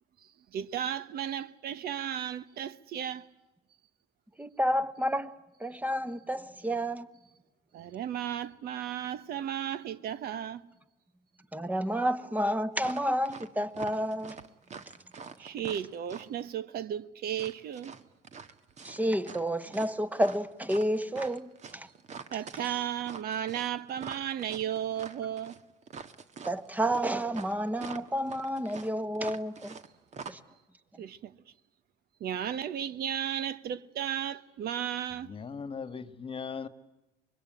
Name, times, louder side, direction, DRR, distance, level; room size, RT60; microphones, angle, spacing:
voice 1, 0.5-3.3 7.7-10.7 15.4-18.0 22.3-25.6 31.0-31.4 32.2-35.3, right 10 dB, 65° right, 1.1 m, -34 dB
voice 2, 4.4-5.3 5.6-7.1 11.5-14.4 18.8-21.9 22.5-22.6 26.4-29.8 30.3-30.4 30.9-31.0, equal, 10° right, 1.2 m, -30 dB
sound 1, 12.8-13.5 13.7-16.4 17.3-19.5 19.7-29.9 30.1-30.3, right 5 dB, 45° right, 1.6 m, -45 dB
voice 3, 35.1-36.7, left 5 dB, 30° left, 1.5 m, -39 dB
25.0 x 22.5 x 9.2 m
cardioid pair, 110°, 17 cm